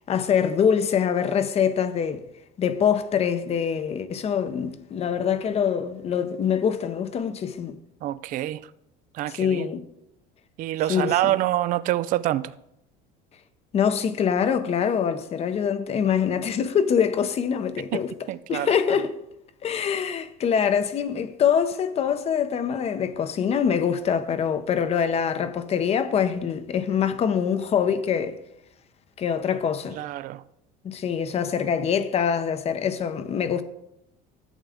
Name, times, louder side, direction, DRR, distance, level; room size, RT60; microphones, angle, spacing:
voice 1, 0.1-2.2 2.6-7.8 9.3-9.8 10.9-11.1 13.7-18.1 18.5-19.2 19.6-28.4 29.2-30.0 30.8-33.6, left 7 dB, 35° left, 0.8 m, -24 dB
voice 2, 8.0-8.6 9.1-9.7 10.6-12.5 17.9-19.0 29.9-30.4, right 14 dB, 50° right, 0.4 m, -26 dB
11.0 x 8.1 x 3.6 m
cardioid pair, 120°, 17 cm